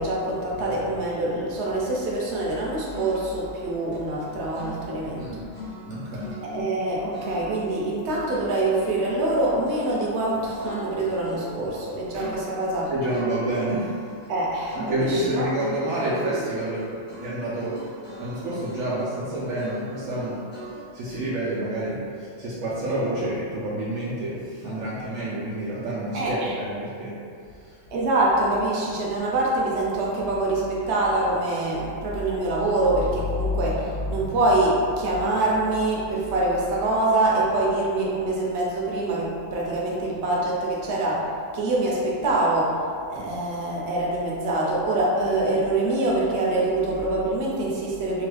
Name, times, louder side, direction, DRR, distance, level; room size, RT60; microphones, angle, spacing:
voice 1, 0.0-5.2 6.4-12.9 14.3-15.5 26.1-26.6 27.9-41.3 41.5-42.8 43.1-48.3, right 2 dB, 65° right, -4 dB, 0.9 m, -25 dB
sound 1, 2.7-5.3 5.5-7.8 8.1-20.7, equal, 15° left, 0.5 m, -41 dB
voice 2, 5.9-6.3 12.9-14.0 14.8-16.8 17.2-17.7 18.2-20.4 20.9-27.1 27.6-27.8, right 1 dB, 85° right, -9 dB, 1.0 m, -28 dB
3.0 x 2.2 x 3.1 m, 2.4 s
omnidirectional pair, 1.3 m